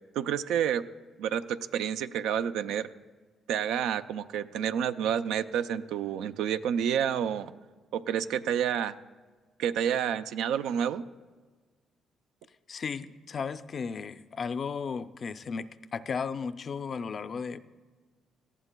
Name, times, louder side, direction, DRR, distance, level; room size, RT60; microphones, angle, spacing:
voice 1, 0.1-0.8 1.2-2.9 3.5-7.5 7.9-8.9 9.6-11.0, right 9 dB, 90° right, 11 dB, 0.4 m, -29 dB
voice 2, 12.7-17.6, left 5 dB, 45° left, 12 dB, 0.4 m, -35 dB
19.0 x 15.0 x 2.2 m, 1.4 s
cardioid pair, 90°, 0 cm